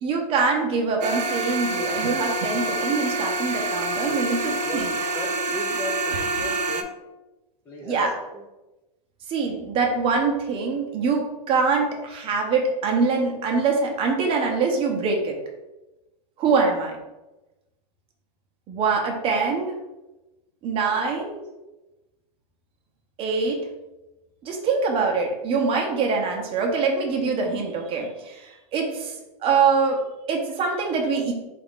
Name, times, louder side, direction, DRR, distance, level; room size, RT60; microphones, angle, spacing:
voice 1, 0.0-4.9 7.8-8.1 9.3-15.4 16.4-17.0 18.7-19.7 20.6-21.4 23.2-23.6 24.4-29.1 29.4-30.0 30.3-31.3, right 4 dB, 25° right, 1 dB, 0.7 m, -24 dB
sound 1, 1.0-6.8, right 2 dB, 85° right, 0.5 m, -27 dB
voice 2, 4.0-4.3 4.6-4.9 5.1-6.9 7.7-8.0 8.3-8.4 20.9-21.3, left 2 dB, 10° left, -3 dB, 0.4 m, -36 dB
3.7 x 2.5 x 3.6 m, 1.0 s
hypercardioid pair, 135°, 21 cm